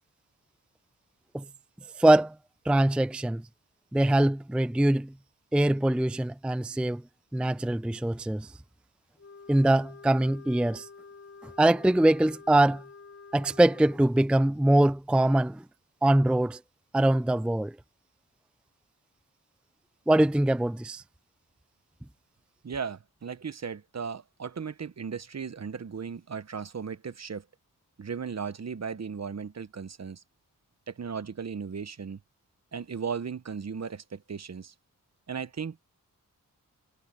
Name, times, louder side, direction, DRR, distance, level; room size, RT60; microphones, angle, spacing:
voice 1, 2.0-2.3 2.7-3.4 3.9-5.1 5.5-7.0 7.3-8.5 9.5-10.9 11.6-12.8 13.3-15.6 16.0-16.6 16.9-17.7 20.1-21.0, right 1 dB, 5° right, 0.4 m, -23 dB
Wind instrument woodwind instrument, 9.2-14.0, left 4 dB, 45° left, 3.6 m, -49 dB
voice 2, 22.6-27.5 28.0-30.2 30.9-32.2 32.7-34.7 35.3-35.8, right 6 dB, 50° right, 1.0 m, -36 dB
wide cardioid pair, 70°, 33 cm